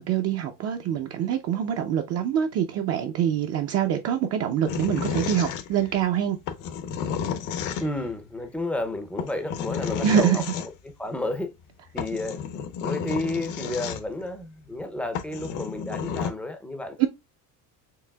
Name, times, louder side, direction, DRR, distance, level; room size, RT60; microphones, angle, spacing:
voice 1, 0.0-6.4 10.0-10.4 17.0-17.1, right 9 dB, 45° right, 0.5 m, -25 dB
sound 1, 4.7-6.0 6.5-8.1 9.2-10.7 11.6-11.7 12.0-14.3 14.8-14.9 15.1-16.3, left 7 dB, 60° left, 0.8 m, -31 dB
voice 2, 7.8-11.5 11.9-12.4 12.8-17.1, left 1 dB, 5° left, 0.5 m, -31 dB
4.7 x 3.3 x 2.2 m
cardioid pair, 155°, 34 cm